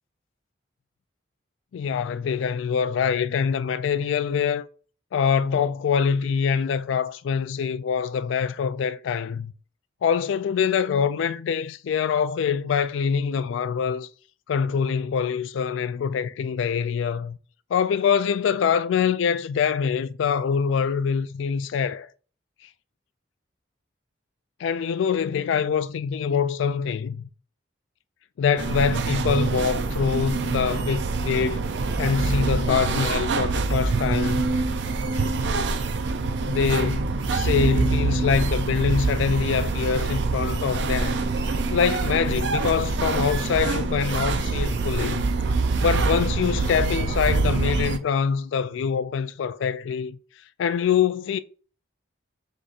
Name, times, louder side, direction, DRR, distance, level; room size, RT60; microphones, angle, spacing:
voice 1, 1.7-4.7 5.1-9.5 10.0-14.1 14.5-17.4 17.7-22.1 24.6-27.2 28.4-31.7 32.0-34.6 36.4-45.3 45.8-50.2 50.6-51.4, left 6 dB, 75° left, 0.3 m, -24 dB
sound 1, 28.6-48.0, right 3 dB, 65° right, 0.4 m, -25 dB
6.4 x 2.9 x 2.4 m
head